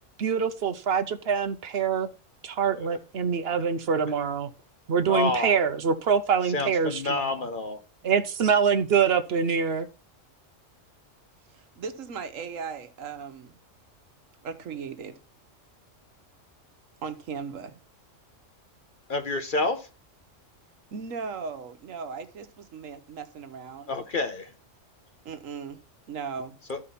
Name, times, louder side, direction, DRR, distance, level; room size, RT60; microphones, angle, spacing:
voice 1, 0.2-2.1 2.4-4.5 4.9-7.3 8.0-9.9, right 6 dB, 55° right, 0.9 m, -25 dB
voice 2, 5.1-5.5 6.5-7.8 19.1-19.9 23.9-24.5 26.7-26.8, left 3 dB, 45° left, 1.0 m, -28 dB
voice 3, 11.8-13.6 14.4-15.1 17.0-17.8 20.9-23.9 25.2-25.8 26.1-26.6, right 5 dB, 90° right, 1.4 m, -37 dB
12.5 x 4.9 x 4.2 m
omnidirectional pair, 1.3 m